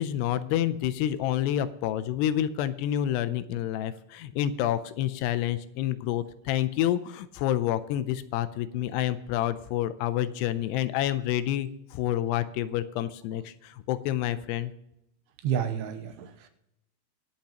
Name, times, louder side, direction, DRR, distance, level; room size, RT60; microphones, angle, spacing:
voice 1, 0.0-14.7, left 12 dB, 80° left, 13 dB, 2.6 m, -28 dB
voice 2, 15.4-16.5, right 8 dB, 80° right, 7 dB, 2.8 m, -30 dB
23.5 x 8.6 x 2.9 m, 0.81 s
omnidirectional pair, 4.9 m